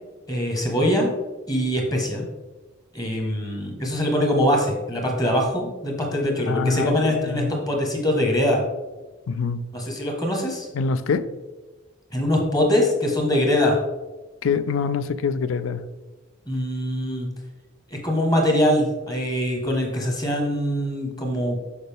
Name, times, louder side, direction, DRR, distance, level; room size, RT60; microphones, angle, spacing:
voice 1, 0.3-1.1 1.5-2.2 2.9-8.6 9.7-10.7 12.1-13.8 16.5-17.3 17.9-21.6, equal, 20° left, 1 dB, 1.3 m, -23 dB
voice 2, 6.5-7.5 9.3-9.6 10.7-11.3 14.4-15.9, left 5 dB, 70° left, 14 dB, 0.4 m, -25 dB
6.5 x 5.3 x 3.5 m, 1.2 s
head